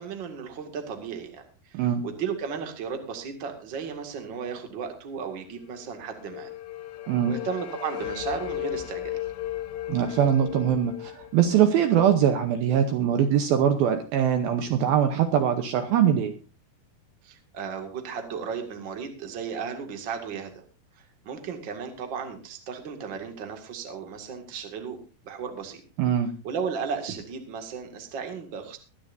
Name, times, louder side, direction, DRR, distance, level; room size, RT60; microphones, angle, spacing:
voice 1, 0.0-6.5 7.2-9.3 17.2-20.5 21.0-25.0 25.2-25.8 26.4-28.8, right 6 dB, 40° right, 4 dB, 2.0 m, -35 dB
sound 1, 5.8-12.8, left 13 dB, 90° left, 3.3 m, -36 dB
voice 2, 9.9-16.3 26.0-26.3, right 9 dB, 70° right, 7 dB, 2.5 m, -22 dB
23.0 x 10.5 x 2.7 m, 0.34 s
omnidirectional pair, 4.8 m